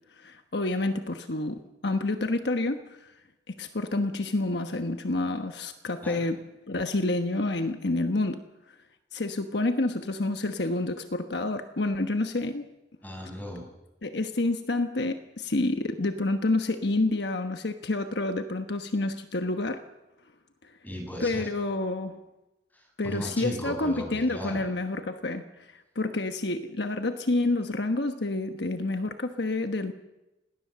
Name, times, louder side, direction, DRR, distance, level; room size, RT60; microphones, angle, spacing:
voice 1, 0.2-3.1 3.5-6.4 6.7-8.4 9.1-12.6 14.0-19.8 20.6-20.7 21.2-22.2 23.0-29.9, left 2 dB, 65° left, 7 dB, 1.2 m, -28 dB
voice 2, 13.0-13.6 20.8-21.5 22.7-24.7, left 1 dB, 10° left, 1 dB, 6.6 m, -36 dB
27.0 x 19.5 x 6.9 m, 1.0 s
head